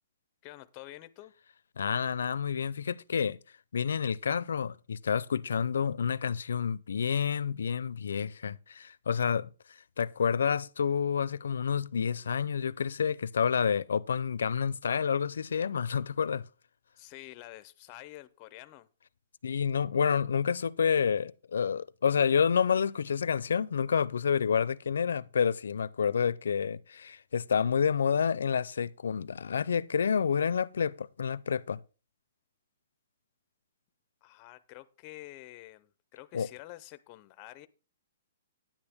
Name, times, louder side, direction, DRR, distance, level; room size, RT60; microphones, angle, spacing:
voice 1, 0.4-1.3 17.0-18.9 34.2-37.7, left 17 dB, 25° left, 0.5 m, -48 dB
voice 2, 1.8-3.4 3.7-16.5 19.4-31.8 36.3-36.5, left 7 dB, 85° left, 0.5 m, -29 dB
10.0 x 8.9 x 3.5 m
hypercardioid pair, 170°, 0 cm